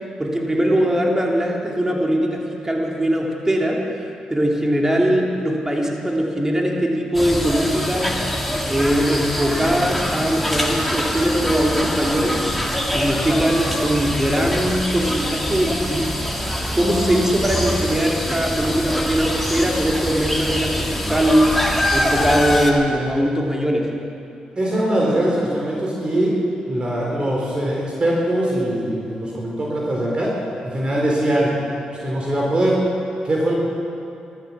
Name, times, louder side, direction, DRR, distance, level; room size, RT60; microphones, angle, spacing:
voice 1, 0.2-3.8 4.3-8.2 8.7-12.4 12.9-16.1 16.7-21.5 21.9-23.9, equal, 20° right, -1 dB, 3.0 m, -21 dB
sound 1, 7.1-22.7, left 1 dB, ahead, 2.7 m, -24 dB
voice 2, 24.6-26.4 26.7-31.5 32.0-32.8 33.2-33.5, right 1 dB, 40° right, -3 dB, 3.8 m, -21 dB
14.0 x 13.5 x 7.3 m, 2.7 s
supercardioid pair, 55°, 3 cm